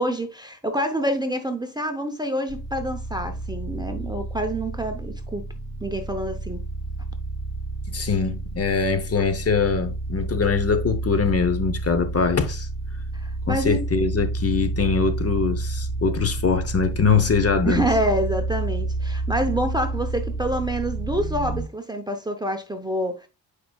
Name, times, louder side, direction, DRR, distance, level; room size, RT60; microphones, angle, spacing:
voice 1, 0.0-5.4 5.8-6.6 13.1-13.8 17.6-23.3, right 1 dB, 10° right, 0.6 m, -27 dB
sound 1, 2.5-21.6, right 2 dB, 80° left, 3.5 m, -30 dB
voice 2, 7.9-12.7 13.5-17.8, left 5 dB, 35° left, 0.8 m, -22 dB
8.5 x 4.9 x 2.3 m
cardioid pair, 125°, 44 cm